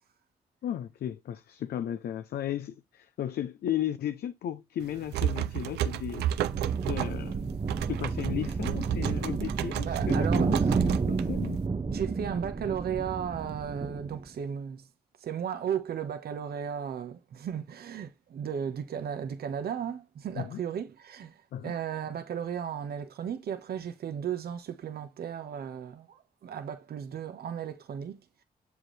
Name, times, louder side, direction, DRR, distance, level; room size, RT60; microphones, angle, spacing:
voice 1, 0.6-6.4 6.8-7.4 7.9-11.6 20.4-20.6 21.5-21.7, left 10 dB, 75° left, 0.6 m, -35 dB
sound 1, 4.8-11.6, right 11 dB, 85° right, 0.5 m, -32 dB
sound 2, 5.8-14.3, right 4 dB, 35° right, 0.8 m, -31 dB
voice 2, 9.9-10.5 11.9-14.8 15.2-21.4 21.6-28.2, right 8 dB, 70° right, 1.2 m, -35 dB
7.5 x 4.6 x 3.3 m
supercardioid pair, 45°, 17 cm